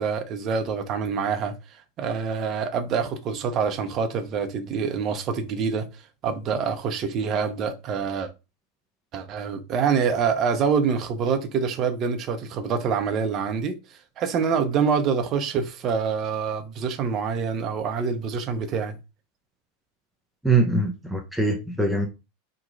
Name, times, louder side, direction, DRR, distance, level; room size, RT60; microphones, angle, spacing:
voice 1, 0.0-1.5 2.0-5.9 6.2-8.3 9.1-13.7 14.2-18.9, right 6 dB, 40° right, 0.8 m, -26 dB
voice 2, 20.4-22.1, right 3 dB, ahead, 0.6 m, -22 dB
3.0 x 2.3 x 3.9 m
hypercardioid pair, 90°, 0 cm